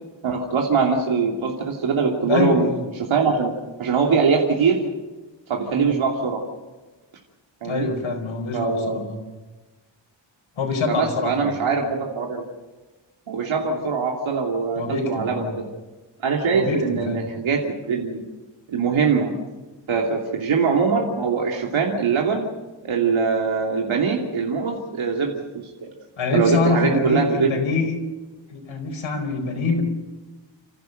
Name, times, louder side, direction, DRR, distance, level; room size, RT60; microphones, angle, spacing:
voice 1, 0.2-2.6 3.1-3.5 3.8-4.8 5.5-6.4 7.6-7.9 8.5-9.0 10.9-12.4 13.3-15.7 16.2-18.2 18.7-19.3 19.9-22.5 22.8-25.9 26.3-27.5, right 5 dB, 85° right, -1 dB, 2.9 m, -22 dB
voice 2, 2.3-2.8 5.7-5.9 7.6-9.2 10.6-11.5 14.7-15.5 16.5-17.2 26.2-27.9 28.5-29.8, left 4 dB, 85° left, 4 dB, 4.8 m, -25 dB
30.0 x 15.0 x 6.7 m, 1.2 s
wide cardioid pair, 120°, 46 cm